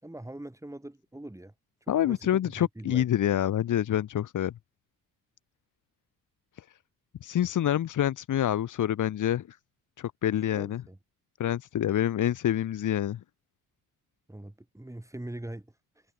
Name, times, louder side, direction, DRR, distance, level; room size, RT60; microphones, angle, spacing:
voice 1, 0.0-1.5 1.9-3.1 10.5-11.0 14.3-16.1, right 1 dB, 10° right, 5.4 m, -42 dB
voice 2, 1.9-4.5 6.5-6.6 7.2-9.6 10.0-10.8 11.4-13.2, left 11 dB, 55° left, 1.2 m, -27 dB
supercardioid pair, 70°, 37 cm